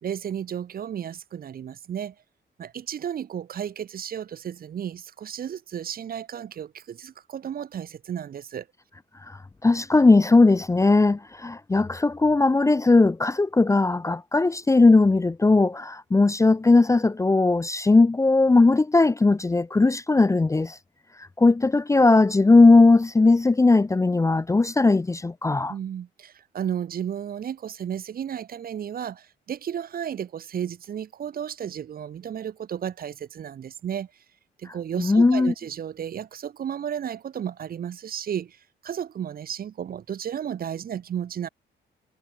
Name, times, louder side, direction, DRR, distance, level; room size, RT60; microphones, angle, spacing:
voice 1, 0.0-2.1 2.6-8.7 25.7-34.1 34.6-38.6 38.8-41.5, right 9 dB, 50° right, 0.7 m, -33 dB
voice 2, 9.6-20.8 21.4-25.7 35.0-35.5, left 3 dB, 15° left, 0.5 m, -18 dB
cardioid pair, 90°, 20 cm